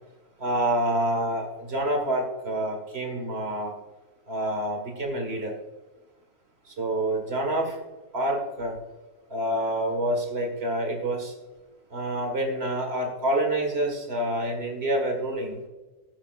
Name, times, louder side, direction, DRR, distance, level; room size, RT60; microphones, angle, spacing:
voice 1, 0.4-3.7 4.3-5.5 6.7-7.8 8.1-8.8 9.3-11.3 11.9-15.6, right 1 dB, 40° right, 2 dB, 2.0 m, -27 dB
13.5 x 9.6 x 2.5 m, 1.2 s
omnidirectional pair, 1.6 m